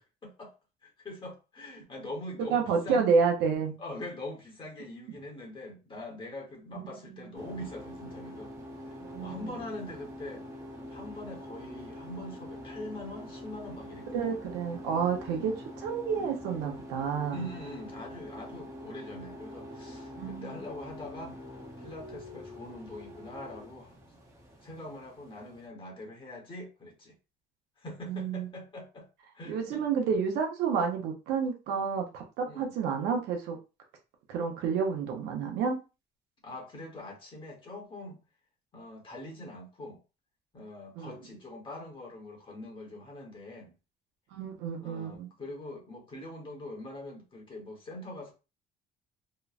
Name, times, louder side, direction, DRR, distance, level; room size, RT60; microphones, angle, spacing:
voice 1, 0.2-0.5 0.8-3.1 3.8-8.5 9.2-10.5 10.9-14.4 15.2-15.5 17.3-21.4 21.8-24.0 24.6-27.2 27.8-29.1 29.3-29.8 32.5-32.7 36.4-38.2 38.7-40.0 40.5-43.7 44.8-48.3, left 1 dB, 30° left, 1.0 m, -43 dB
voice 2, 2.5-3.8 7.1-7.2 9.0-9.4 14.1-15.5 15.8-17.4 20.2-20.6 28.1-28.5 29.5-33.6 34.3-35.8 41.0-41.1 44.3-45.3, right 6 dB, 90° right, 0.8 m, -29 dB
sound 1, 7.3-25.7, left 1 dB, 15° right, 0.7 m, -45 dB
3.0 x 2.0 x 2.4 m
cardioid pair, 110°, 17 cm